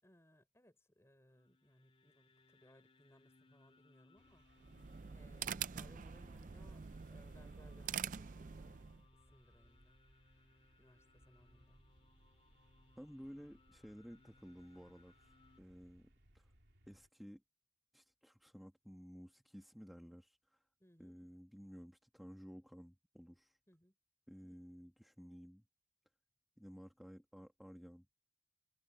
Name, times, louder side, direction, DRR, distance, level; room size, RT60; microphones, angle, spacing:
voice 1, 0.0-4.4 5.1-6.8 7.1-10.0 10.8-11.8 20.8-21.2 23.7-23.9 24.4-24.6, equal, 15° left, 5.7 m, -67 dB
sound 1, 1.3-15.6, left 2 dB, 35° left, 2.3 m, -70 dB
sound 2, 4.2-17.1, right 1 dB, 85° right, 3.3 m, -69 dB
sound 3, 4.6-9.0, right 8 dB, 45° right, 0.5 m, -45 dB
voice 2, 12.9-16.5 16.9-17.4 17.9-20.6 21.0-23.6 24.3-25.6 26.6-28.1, equal, ahead, 1.5 m, -55 dB
head